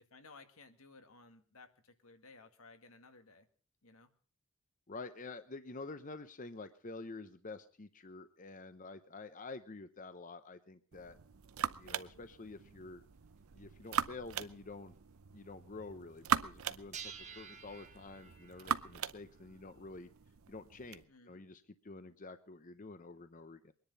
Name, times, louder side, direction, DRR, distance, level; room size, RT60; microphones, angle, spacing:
voice 1, 0.1-3.5 3.8-4.1 21.1-21.4, left 3 dB, 85° left, 7 dB, 1.9 m, -58 dB
voice 2, 4.9-11.2 11.8-13.1 13.5-14.9 15.3-20.1 20.5-23.7, left 3 dB, 40° left, 11 dB, 0.7 m, -48 dB
sound 1, 10.9-21.0, right 7 dB, 80° right, 0.7 m, -40 dB
sound 2, 12.6-12.7 13.6-13.7 14.2-14.3 14.7-15.0 16.9-20.1, right 7 dB, 35° right, 1.3 m, -52 dB
22.5 x 10.5 x 5.4 m, 0.41 s
head